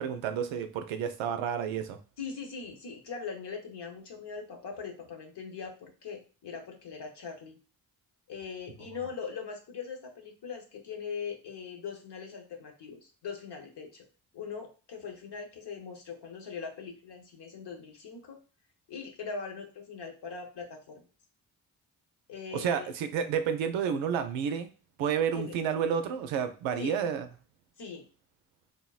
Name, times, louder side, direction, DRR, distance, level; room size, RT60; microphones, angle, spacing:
voice 1, 0.0-2.0 22.5-24.7 25.0-27.3, right 7 dB, 80° right, 8 dB, 0.5 m, -30 dB
voice 2, 2.2-7.6 8.3-14.0 14.3-18.4 18.9-21.0 22.3-22.9 25.3-25.6 26.8-26.9 27.8-28.1, left 5 dB, 60° left, 3 dB, 1.0 m, -41 dB
3.5 x 2.1 x 2.3 m, 0.36 s
supercardioid pair, 45°, 46 cm